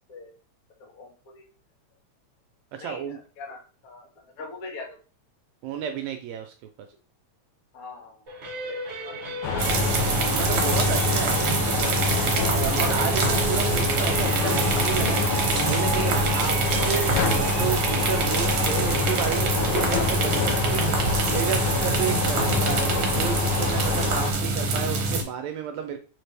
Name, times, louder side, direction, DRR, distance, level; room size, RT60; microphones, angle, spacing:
voice 1, 0.8-1.5 2.8-5.0 7.7-8.2 8.6-9.2 20.4-20.9, left 3 dB, 55° left, -1 dB, 1.0 m, -42 dB
voice 2, 2.7-3.2 5.6-6.5 9.3-9.4 9.7-12.2 12.5-16.6 16.8-26.0, right 8 dB, 80° right, 6 dB, 1.7 m, -32 dB
sound 1, 8.3-19.4, right 2 dB, 35° right, 1.1 m, -35 dB
sound 2, 9.4-24.3, left 4 dB, 80° left, 1.3 m, -27 dB
sound 3, 9.6-25.2, right 3 dB, 65° right, 1.7 m, -25 dB
4.6 x 3.3 x 3.3 m, 0.37 s
omnidirectional pair, 3.3 m